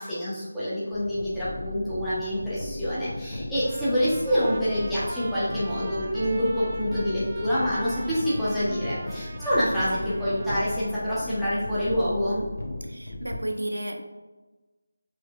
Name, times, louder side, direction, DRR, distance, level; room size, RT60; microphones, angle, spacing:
voice 1, 0.0-12.4, equal, 5° left, -13 dB, 0.8 m, -27 dB
sound 1, 0.9-13.4, left 2 dB, 65° left, 0.9 m, -36 dB
Trumpet, 3.6-11.1, right 2 dB, 35° right, 0.5 m, -42 dB
voice 2, 12.8-14.0, right 1 dB, 85° right, 5 dB, 0.6 m, -32 dB
6.0 x 3.2 x 2.4 m, 1.2 s
figure-of-eight pair, 165°, 0 cm